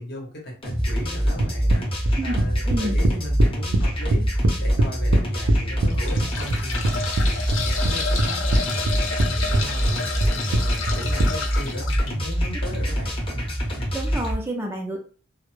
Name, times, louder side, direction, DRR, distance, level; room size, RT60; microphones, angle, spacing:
voice 1, 0.0-4.3 4.6-13.2, equal, 55° left, 0 dB, 0.9 m, -37 dB
sound 1, 0.6-14.3, equal, 30° left, 0.8 m, -25 dB
sound 2, 1.4-3.8 4.1-5.9 6.2-7.3 7.5-8.6 8.9-9.3 9.5-11.3, right 2 dB, 85° right, 0.4 m, -21 dB
voice 2, 2.7-3.0 13.9-15.0, right 1 dB, 10° right, 1 dB, 0.4 m, -29 dB
sound 3, 3.8-4.0 4.7-4.8 5.7-12.1 13.7-13.8 14.1-14.2, left 4 dB, 85° left, 0.5 m, -31 dB
2.1 x 2.0 x 3.0 m, 0.40 s
head